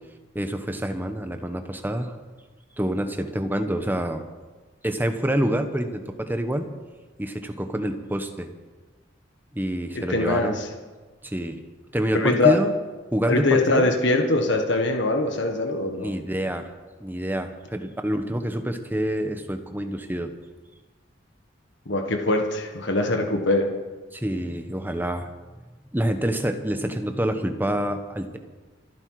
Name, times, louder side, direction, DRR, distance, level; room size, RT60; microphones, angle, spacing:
voice 1, 0.3-2.2 2.8-4.2 4.8-6.7 7.2-8.5 9.5-10.6 11.2-11.6 11.9-12.7 13.1-13.9 16.0-16.7 17.0-20.3 24.1-25.3 25.9-28.4, right 1 dB, 10° right, 7 dB, 1.0 m, -27 dB
voice 2, 9.9-10.7 12.1-12.6 13.3-16.1 21.9-23.7, left 2 dB, 60° left, 4 dB, 1.5 m, -22 dB
26.0 x 9.8 x 4.8 m, 1.3 s
head